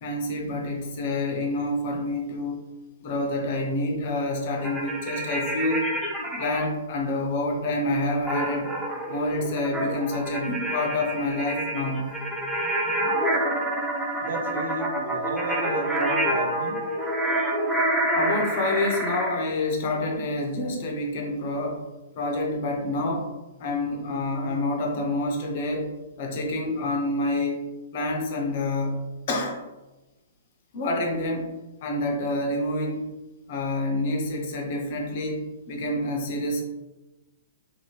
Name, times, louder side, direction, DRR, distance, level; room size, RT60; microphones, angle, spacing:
voice 1, 0.0-2.6 3.0-5.9 6.4-8.7 9.1-12.1 18.1-21.8 22.1-23.3 23.6-25.9 26.2-27.6 27.9-29.6 30.7-31.5 31.8-33.1 33.5-36.6, left 2 dB, 50° left, 1 dB, 0.8 m, -27 dB
sound 1, 4.6-6.7 8.3-19.4, right 1 dB, 5° right, 0.5 m, -27 dB
voice 2, 14.2-16.8, right 3 dB, 70° right, 4 dB, 0.6 m, -33 dB
2.7 x 2.7 x 3.1 m, 1.1 s
hypercardioid pair, 130°, 0 cm